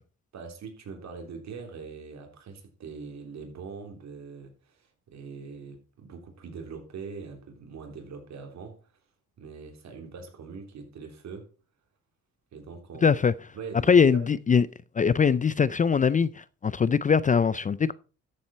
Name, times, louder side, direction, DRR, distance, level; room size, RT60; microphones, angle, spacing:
voice 1, 0.3-8.8 9.4-11.5 12.5-13.2 13.5-14.3, right 5 dB, 65° right, 3.4 m, -42 dB
voice 2, 13.0-13.3 13.9-14.7 15.0-17.9, left 6 dB, 25° left, 0.4 m, -22 dB
13.0 x 7.7 x 4.2 m
cardioid pair, 90°, 30 cm